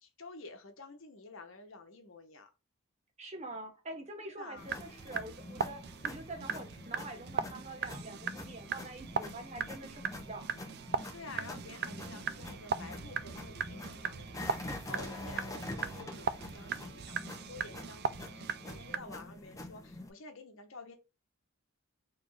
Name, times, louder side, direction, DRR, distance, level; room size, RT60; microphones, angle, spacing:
voice 1, 0.0-2.5 4.4-4.7 11.1-21.0, left 3 dB, 60° left, 1.0 m, -50 dB
voice 2, 3.2-10.5, right 2 dB, 30° right, 1.0 m, -45 dB
sound 1, 4.6-20.1, left 2 dB, 15° left, 0.5 m, -46 dB
sound 2, 4.6-19.0, right 7 dB, 45° right, 0.3 m, -39 dB
4.2 x 3.2 x 3.2 m
head